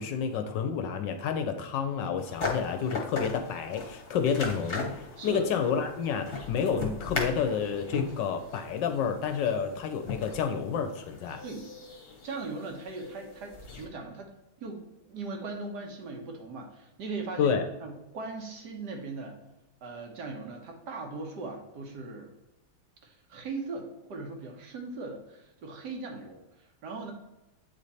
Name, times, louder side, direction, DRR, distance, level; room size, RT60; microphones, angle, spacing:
voice 1, 0.0-11.4 17.4-17.7, left 6 dB, 75° left, 7 dB, 1.2 m, -30 dB
sound 1, 2.2-13.8, left 3 dB, 35° left, 1.1 m, -39 dB
voice 2, 11.4-11.9 12.2-14.3 14.6-19.4 19.8-22.3 23.0-27.1, right 3 dB, 60° right, 3 dB, 1.4 m, -39 dB
8.5 x 3.3 x 4.0 m, 1.0 s
omnidirectional pair, 2.2 m